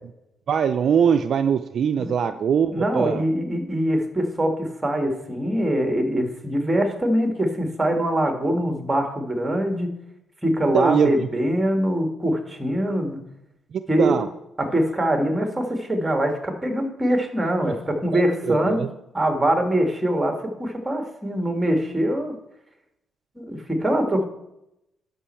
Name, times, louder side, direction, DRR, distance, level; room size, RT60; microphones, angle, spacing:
voice 1, 0.5-3.2 10.7-11.1 13.7-14.3 18.1-18.2 18.5-18.9, right 7 dB, 60° right, 9 dB, 0.4 m, -22 dB
voice 2, 2.7-9.9 10.4-13.2 13.9-14.2 14.6-18.8 19.1-22.3 23.4-24.2, right 1 dB, 15° right, 4 dB, 1.8 m, -23 dB
11.5 x 5.3 x 4.4 m, 0.85 s
cardioid pair, 90°, 0 cm